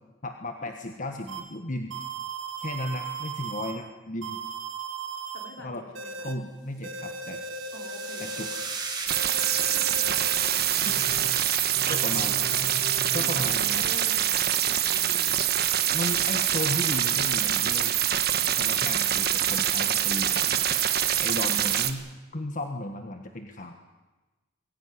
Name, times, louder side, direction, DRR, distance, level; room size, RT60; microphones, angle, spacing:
voice 1, 0.2-2.1 2.6-4.4 5.6-5.8 6.2-7.4 8.2-8.5 10.8-11.0 11.9-12.5 13.1-13.9 15.9-17.9 18.5-20.6 21.2-22.1 22.3-23.8, left 1 dB, 40° left, 5 dB, 1.5 m, -35 dB
sound 1, 1.3-1.4 1.9-3.7 4.2-5.5 6.0-6.3 6.8-8.6 9.1-10.4 10.9-11.3 11.8-13.6, right 4 dB, 75° right, 2.6 m, -37 dB
voice 2, 5.3-6.3 6.7-6.9 7.7-8.4 9.6-10.2 11.8-12.6 13.1-14.4 14.7-15.5, equal, 70° left, 2 dB, 4.9 m, -46 dB
sound 2, 7.0-11.5, right 4 dB, 20° right, 4.9 m, -39 dB
sound 3, 9.1-21.9, right 11 dB, 50° right, 1.4 m, -25 dB
23.0 x 16.0 x 9.9 m, 1.2 s
head